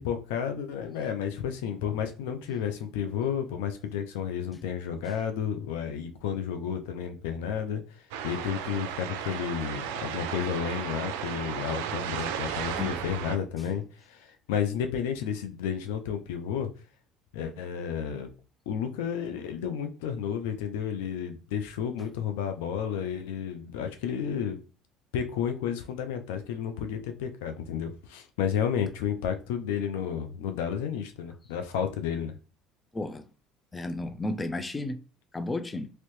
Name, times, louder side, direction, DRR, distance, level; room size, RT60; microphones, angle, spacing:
voice 1, 0.0-16.7 17.3-18.3 18.7-24.6 25.1-32.4, left 8 dB, 80° left, 0.5 m, -32 dB
sound 1, 8.1-13.4, right 8 dB, 80° right, 0.4 m, -34 dB
voice 2, 32.9-33.3 33.7-35.0 35.3-35.9, left 2 dB, 20° left, 0.4 m, -33 dB
3.0 x 2.8 x 3.0 m
hypercardioid pair, 75°, 0 cm